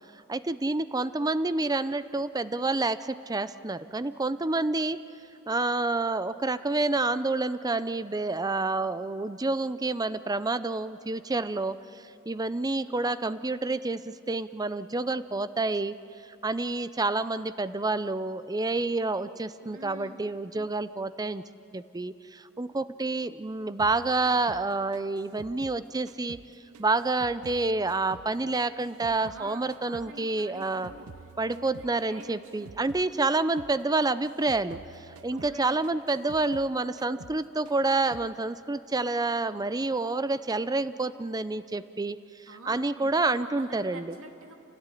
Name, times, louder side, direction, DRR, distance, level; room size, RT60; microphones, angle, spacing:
voice 1, 0.3-5.0 5.5-16.0 16.4-21.4 21.7-26.4 26.8-30.9 31.4-42.2 42.7-44.1, right 3 dB, 15° right, 14 dB, 0.6 m, -28 dB
voice 2, 19.6-20.3 29.2-32.7 35.3-35.8 42.5-44.6, right 2 dB, 65° right, 2 dB, 2.9 m, -47 dB
sound 1, 23.8-26.5 26.7-29.4 29.7-33.1 33.3-33.8 34.0-36.7 37.0-37.4 37.7-38.3, right 4 dB, 85° right, 0.6 m, -49 dB
28.5 x 17.0 x 9.9 m, 2.8 s
head